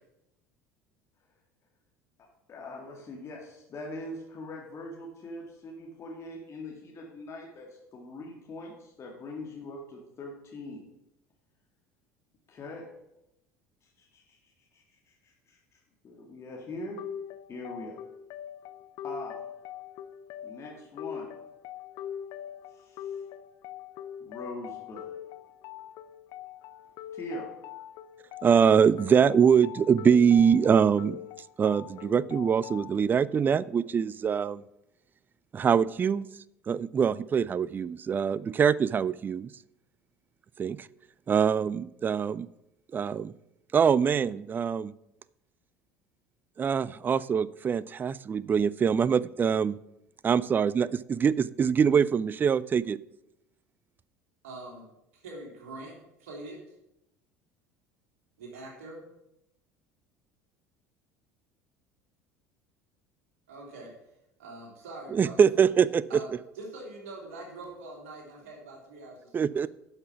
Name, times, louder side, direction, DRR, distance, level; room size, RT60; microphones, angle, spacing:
voice 1, 2.5-10.8 12.5-12.8 13.8-17.0 17.5-18.0 19.0-19.4 20.4-21.3 22.7-23.2 24.2-25.1 27.1-27.5, left 1 dB, 35° left, -1 dB, 2.0 m, -42 dB
sound 1, 17.0-33.0, left 10 dB, 50° left, 0.6 m, -42 dB
voice 2, 28.4-31.2 31.6-34.6 35.5-36.3 36.7-39.5 40.6-40.9 41.3-42.5 42.9-43.3 43.7-44.9 46.6-49.8 50.2-53.0 65.1-66.0 69.3-69.7, right 7 dB, 25° right, 20 dB, 0.3 m, -24 dB
voice 3, 54.4-54.8 55.1-55.9 56.2-56.6 58.4-59.0 63.5-63.9 64.4-65.4 66.1-69.7, right 2 dB, 65° right, -1 dB, 3.0 m, -44 dB
10.5 x 6.1 x 5.8 m, 0.86 s
figure-of-eight pair, 65°, 8 cm